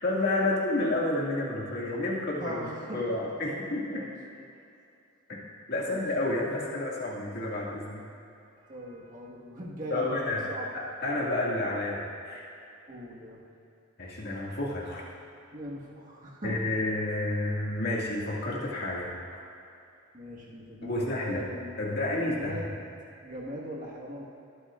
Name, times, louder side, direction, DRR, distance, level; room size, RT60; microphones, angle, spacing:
voice 1, 0.0-2.6 2.9-4.0 5.3-5.4 5.7-8.0 9.9-10.4 10.7-12.4 14.0-15.0 16.4-19.1 20.8-21.4 21.8-22.7, left 2 dB, 45° left, -4 dB, 2.0 m, -30 dB
voice 2, 2.4-3.1 3.4-3.6 3.9-4.1 5.8-6.0 8.6-10.7 12.9-13.4 15.5-16.6 20.1-21.8 22.1-22.8 23.2-24.2, equal, 35° right, -4 dB, 1.5 m, -40 dB
22.5 x 8.7 x 2.5 m, 2.7 s
head